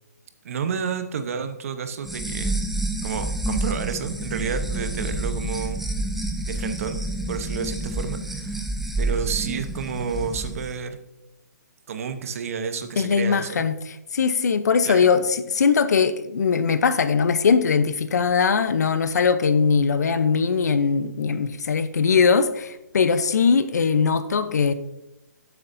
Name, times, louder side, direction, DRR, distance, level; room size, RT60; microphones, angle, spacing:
voice 1, 0.4-2.6 3.0-5.8 6.4-8.6 9.0-11.0 11.9-13.6 14.8-15.1, right 6 dB, 55° right, 1.0 m, -30 dB
sound 1, 2.0-10.7, right 2 dB, ahead, 0.7 m, -29 dB
voice 2, 13.0-24.7, left 5 dB, 70° left, 0.8 m, -21 dB
11.5 x 8.0 x 2.7 m
hypercardioid pair, 150°, 9 cm